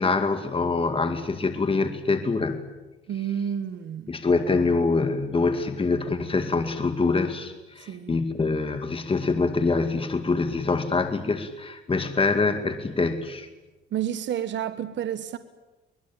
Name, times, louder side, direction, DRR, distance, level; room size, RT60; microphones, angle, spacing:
voice 1, 0.0-2.6 4.1-13.5, left 3 dB, 25° left, 2.1 m, -25 dB
voice 2, 3.1-4.1 7.9-8.2 13.9-15.4, right 9 dB, 65° right, 1.4 m, -30 dB
24.0 x 20.5 x 8.9 m
cardioid pair, 90°, 20 cm